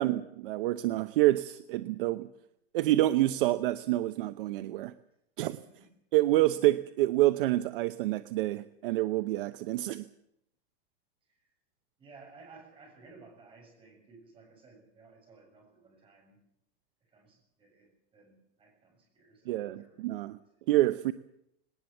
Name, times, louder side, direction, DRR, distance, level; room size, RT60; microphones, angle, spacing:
voice 1, 0.0-2.3 2.7-4.9 5.4-5.6 6.1-10.0 19.5-20.4 20.7-21.1, right 16 dB, 55° right, 11 dB, 0.9 m, -27 dB
voice 2, 12.0-16.4 17.0-20.1 20.5-20.6, right 4 dB, 15° right, 1 dB, 7.1 m, -56 dB
19.5 x 19.0 x 7.2 m, 0.78 s
supercardioid pair, 170°, 33 cm